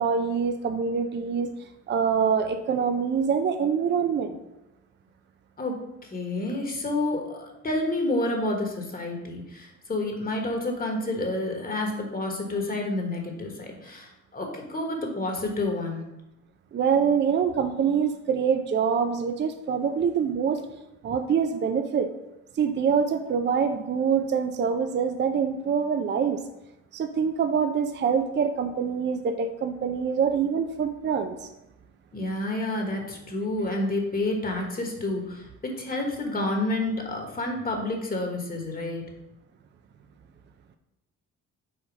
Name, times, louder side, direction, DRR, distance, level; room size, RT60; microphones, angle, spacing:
voice 1, 0.0-1.5 1.9-4.3 16.7-20.6 21.0-22.1 22.6-26.4 26.9-31.4, right 6 dB, 35° right, 8 dB, 0.5 m, -25 dB
voice 2, 5.6-16.0 32.1-39.0, left 2 dB, 30° left, 2 dB, 1.3 m, -29 dB
5.1 x 4.0 x 5.2 m, 0.92 s
cardioid pair, 90°, 30 cm